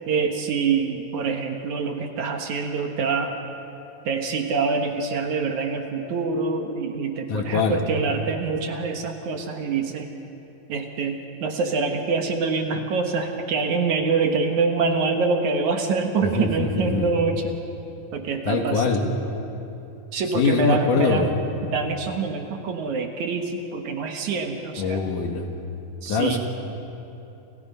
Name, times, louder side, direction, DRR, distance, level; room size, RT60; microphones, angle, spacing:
voice 1, 0.1-3.3 4.0-10.1 10.7-17.5 18.1-19.1 20.1-21.4 21.6-25.0 26.0-26.4, right 4 dB, 60° right, 4 dB, 2.6 m, -25 dB
voice 2, 7.3-7.8 16.2-17.1 18.5-19.1 20.3-21.3 24.8-25.5 26.1-26.4, left 5 dB, 65° left, 4 dB, 3.1 m, -23 dB
29.0 x 28.5 x 5.6 m, 2.9 s
omnidirectional pair, 4.1 m